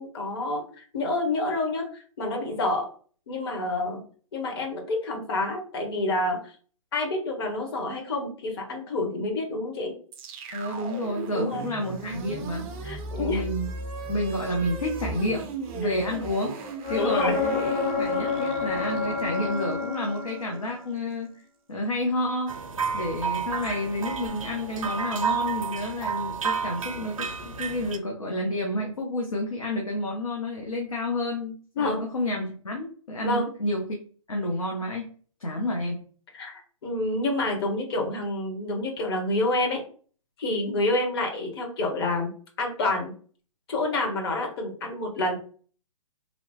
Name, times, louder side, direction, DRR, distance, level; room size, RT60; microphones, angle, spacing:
voice 1, 0.0-2.9 3.3-4.0 4.3-6.5 6.9-9.9 11.3-11.6 12.8-13.4 15.8-15.9 16.9-17.7 31.8-32.0 33.2-33.5 36.3-39.8 40.4-42.3 42.6-43.1 43.7-45.3, left 2 dB, 45° left, 2 dB, 1.0 m, -28 dB
sound 1, 10.1-20.3, right 3 dB, 25° right, 0.4 m, -37 dB
voice 2, 10.5-12.7 13.2-13.7 14.1-15.5 15.7-16.6 16.9-21.4 21.7-22.6 22.9-34.0 34.3-35.1 35.4-36.0, left 1 dB, 80° left, 1 dB, 0.7 m, -30 dB
sound 2, 16.8-20.6 24.3-24.4, left 4 dB, 30° left, 0.5 m, -28 dB
sound 3, 22.5-28.0, right 6 dB, 75° right, 0.5 m, -31 dB
2.9 x 2.0 x 2.7 m, 0.43 s
figure-of-eight pair, 130°, 17 cm